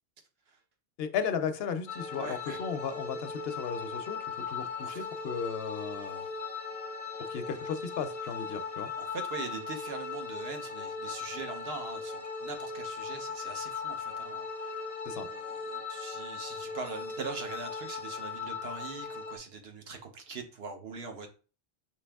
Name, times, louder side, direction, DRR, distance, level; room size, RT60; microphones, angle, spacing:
voice 1, 1.0-6.2 7.2-8.9 15.1-15.3, left 7 dB, 75° left, 0.8 m, -35 dB
sound 1, 1.9-19.4, left 4 dB, 45° left, 0.5 m, -38 dB
voice 2, 2.2-2.6 4.8-5.1 9.0-21.3, right 4 dB, 75° right, 1.0 m, -42 dB
5.2 x 2.8 x 3.4 m
omnidirectional pair, 1.0 m